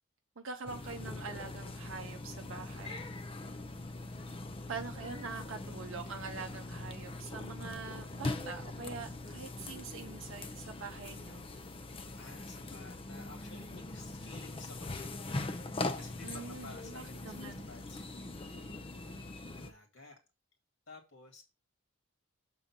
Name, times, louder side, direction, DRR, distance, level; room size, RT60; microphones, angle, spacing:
voice 1, 0.4-3.0 4.7-11.4 16.2-17.6, right 4 dB, 60° right, 4 dB, 0.6 m, -44 dB
sound 1, 0.7-19.7, left 2 dB, 25° left, 0.5 m, -42 dB
voice 2, 11.8-20.2 20.9-21.4, left 3 dB, 65° left, 2 dB, 2.0 m, -54 dB
6.7 x 3.8 x 5.8 m, 0.28 s
head